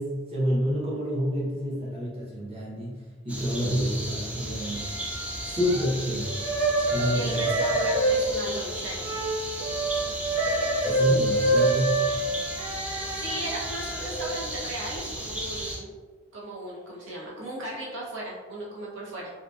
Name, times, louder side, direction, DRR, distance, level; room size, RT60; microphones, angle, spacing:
voice 1, 0.0-3.0 3.2-4.9 5.4-6.4 6.9-7.5 10.8-12.0, equal, 30° right, -7 dB, 0.7 m, -28 dB
sound 1, 3.3-15.8, right 1 dB, 5° right, 0.3 m, -35 dB
sound 2, 4.8-5.9 6.2-14.3, right 2 dB, 90° right, 0.9 m, -27 dB
voice 2, 7.1-9.1 13.2-15.9 16.3-19.3, right 1 dB, 70° right, -5 dB, 0.6 m, -36 dB
2.7 x 2.5 x 2.2 m, 1.4 s
head